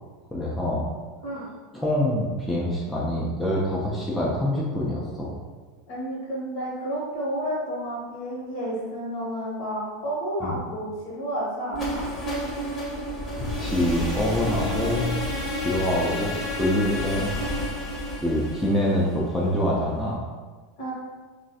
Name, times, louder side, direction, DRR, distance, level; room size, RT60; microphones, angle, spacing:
voice 1, 0.3-0.9 1.7-5.3 10.4-10.5 13.4-15.1 15.5-17.3 18.2-20.2, left 1 dB, 5° left, -6 dB, 0.6 m, -25 dB
voice 2, 5.9-12.1 20.8-20.9, right 1 dB, 55° left, -5 dB, 1.2 m, -31 dB
sound 1, 11.7-19.6, left 1 dB, 30° left, 1.0 m, -30 dB
3.0 x 2.3 x 2.7 m, 1.4 s
figure-of-eight pair, 80°, 0 cm